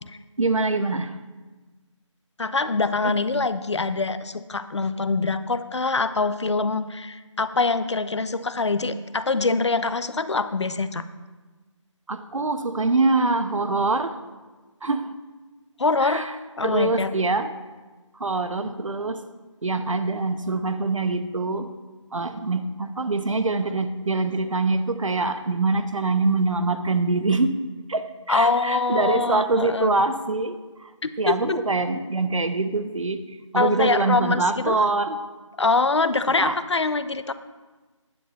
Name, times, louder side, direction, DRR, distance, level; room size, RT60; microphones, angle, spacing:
voice 1, 0.4-1.1 3.0-3.1 12.1-14.1 14.8-15.1 16.0-16.4 16.6-17.5 18.2-19.2 19.6-21.7 22.1-27.6 27.9-30.6 31.2-33.2 33.5-35.2 36.4-36.6, right 3 dB, 80° right, 0.8 m, -24 dB
voice 2, 2.4-11.0 15.8-16.3 16.6-17.1 28.3-29.9 31.0-31.6 33.6-34.8 35.6-37.3, left 3 dB, 60° left, 0.6 m, -24 dB
9.8 x 7.7 x 4.3 m
figure-of-eight pair, 175°, 16 cm